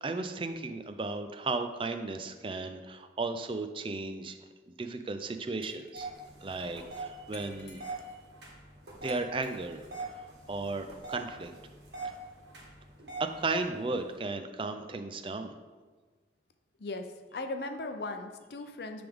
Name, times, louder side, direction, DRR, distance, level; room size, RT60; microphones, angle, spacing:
voice 1, 0.0-4.4 4.7-6.1 6.4-7.8 9.0-9.9 10.1-11.5 13.2-15.5, right 3 dB, 30° right, 8 dB, 0.4 m, -35 dB
Glass, 5.6-6.4 7.3-8.3 9.1-10.0, left 4 dB, 85° left, 0.9 m, -55 dB
sound 1, 5.9-14.2, right 3 dB, 75° right, 1.7 m, -44 dB
voice 2, 17.3-19.1, left 2 dB, 65° left, 7 dB, 0.5 m, -37 dB
10.0 x 3.5 x 3.6 m, 1.4 s
head